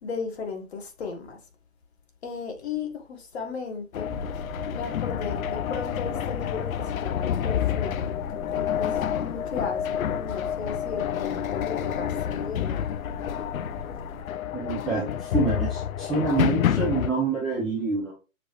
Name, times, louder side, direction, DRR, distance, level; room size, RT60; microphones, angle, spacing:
voice 1, 0.0-1.4 2.2-4.1 4.7-8.2 8.5-12.8, left 5 dB, 50° left, 1.4 m, -35 dB
sound 1, 3.9-17.1, left 10 dB, 85° left, 0.5 m, -29 dB
sound 2, 4.1-14.2, left 2 dB, 20° left, 1.5 m, -40 dB
voice 2, 14.5-18.1, right 4 dB, ahead, 0.5 m, -27 dB
6.6 x 3.1 x 2.4 m
hypercardioid pair, 145°, 40 cm